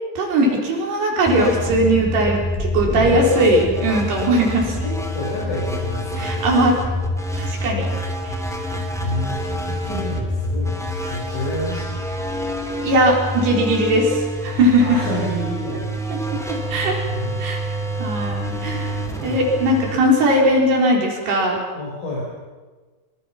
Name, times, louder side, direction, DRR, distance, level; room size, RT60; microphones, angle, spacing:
voice 1, 0.2-4.8 6.2-6.8 7.4-7.9 8.2-8.4 12.8-15.0 16.5-17.0 17.4-17.6 18.0-21.6, right 1 dB, 65° right, -1 dB, 6.3 m, -19 dB
sound 1, 1.3-20.8, equal, ahead, 2.0 m, -27 dB
voice 2, 2.9-3.4 3.8-3.9 4.8-6.5 6.7-7.0 9.0-9.4 9.7-12.0 14.8-16.3 17.1-17.4 21.7-22.2, left 1 dB, 45° left, -5 dB, 6.8 m, -29 dB
25.5 x 25.5 x 5.9 m, 1.4 s
omnidirectional pair, 5.1 m